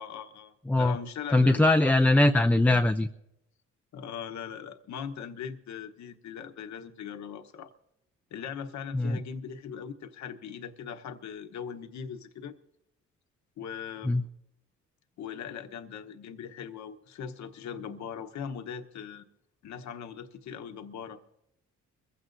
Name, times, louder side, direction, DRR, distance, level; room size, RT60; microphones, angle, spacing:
voice 1, 0.0-1.9 3.9-7.7 8.3-12.5 13.6-14.1 15.2-19.2 19.6-21.2, left 7 dB, 65° left, 6 dB, 1.1 m, -40 dB
voice 2, 1.3-3.1 8.9-9.2 14.0-14.2, left 2 dB, 5° left, 7 dB, 0.5 m, -21 dB
22.5 x 15.5 x 2.6 m, 0.80 s
cardioid pair, 90°, 30 cm